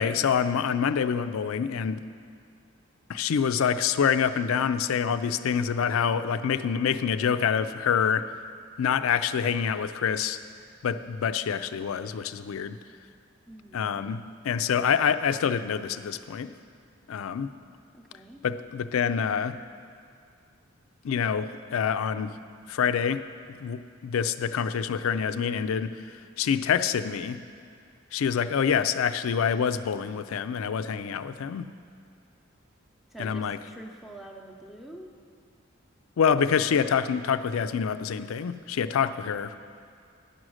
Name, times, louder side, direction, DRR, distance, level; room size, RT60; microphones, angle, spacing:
voice 1, 0.0-2.0 3.1-8.3 8.8-10.4 10.8-12.8 13.7-16.5 17.1-17.5 18.4-19.6 21.0-22.3 22.7-23.2 23.6-26.0 26.4-27.4 28.1-31.7 33.2-33.6 36.2-39.6, left 7 dB, 85° left, 12 dB, 0.4 m, -26 dB
voice 2, 13.5-13.9 17.9-18.4 33.1-35.1 38.9-39.6, right 1 dB, ahead, 1 dB, 0.7 m, -46 dB
10.0 x 6.2 x 6.3 m, 2.3 s
head